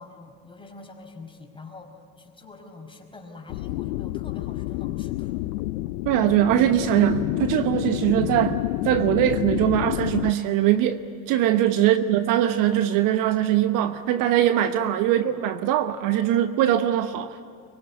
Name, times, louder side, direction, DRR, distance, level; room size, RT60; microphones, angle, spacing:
voice 1, 0.0-5.5 11.8-12.2 15.0-15.4, left 3 dB, 10° left, 2 dB, 4.9 m, -45 dB
sound 1, 3.5-10.3, left 18 dB, 65° left, 0.7 m, -29 dB
voice 2, 6.0-11.0 11.3-17.4, right 12 dB, 50° right, 10 dB, 1.1 m, -21 dB
23.5 x 23.5 x 9.8 m, 2.2 s
hypercardioid pair, 90°, 42 cm